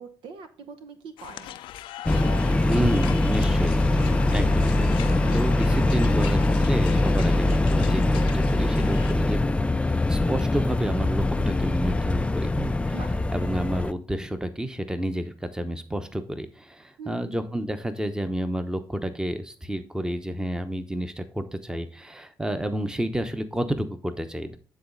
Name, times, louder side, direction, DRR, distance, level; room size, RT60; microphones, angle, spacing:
voice 1, 0.0-1.6 2.1-3.6 12.9-13.1 17.0-17.5, right 5 dB, 75° right, 9 dB, 0.9 m, -43 dB
sound 1, 1.2-9.1, left 12 dB, 80° left, 0.4 m, -39 dB
sound 2, 2.0-13.9, left 2 dB, 15° left, 0.4 m, -23 dB
voice 2, 2.6-3.9 4.3-5.0 5.3-9.4 10.1-13.0 13.3-24.6, right 1 dB, 10° right, 9 dB, 1.0 m, -30 dB
9.2 x 4.0 x 4.0 m, 0.41 s
supercardioid pair, 65°, 8 cm